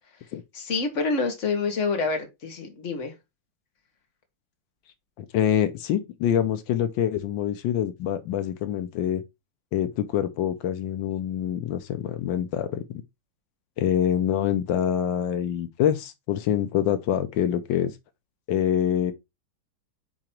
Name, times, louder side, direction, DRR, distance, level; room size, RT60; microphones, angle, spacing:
voice 1, 0.5-3.1, left 4 dB, 40° left, 1.7 m, -27 dB
voice 2, 5.2-9.2 9.7-13.0 13.8-17.9 18.5-19.1, left 10 dB, 85° left, 1.5 m, -25 dB
8.9 x 3.0 x 4.5 m
omnidirectional pair, 2.0 m